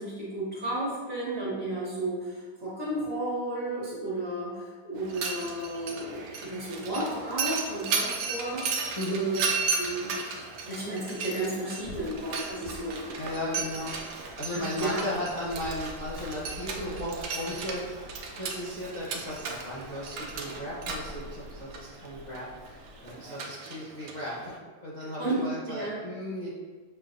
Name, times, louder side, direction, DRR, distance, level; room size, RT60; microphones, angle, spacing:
voice 1, 0.0-9.3 9.8-10.1 10.7-13.5 14.5-15.0 25.2-25.4 25.7-26.0, right 2 dB, 45° right, -7 dB, 1.2 m, -33 dB
Mechanisms, 5.0-24.6, right 4 dB, 85° right, 1.2 m, -35 dB
voice 2, 9.0-9.3 13.2-24.5 24.8-26.5, left 1 dB, 45° left, -8 dB, 0.6 m, -36 dB
sound 1, 11.8-23.2, left 1 dB, 90° left, 1.2 m, -48 dB
6.1 x 2.3 x 2.5 m, 1.4 s
omnidirectional pair, 1.7 m